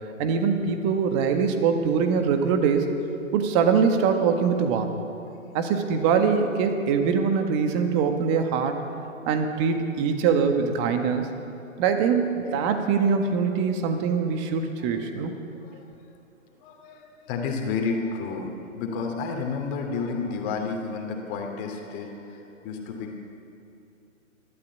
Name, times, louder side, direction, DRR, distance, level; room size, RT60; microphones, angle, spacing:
voice 1, 0.2-2.9 3.3-5.0 5.5-8.8 9.2-11.3 11.8-15.3, right 6 dB, 20° right, 6 dB, 1.7 m, -23 dB
voice 2, 5.2-5.7 9.2-9.3 11.7-11.8 12.4-12.6 15.6-15.9 16.6-23.1, left 4 dB, 20° left, 3 dB, 2.7 m, -31 dB
27.0 x 13.0 x 8.4 m, 2.7 s
figure-of-eight pair, 135°, 41 cm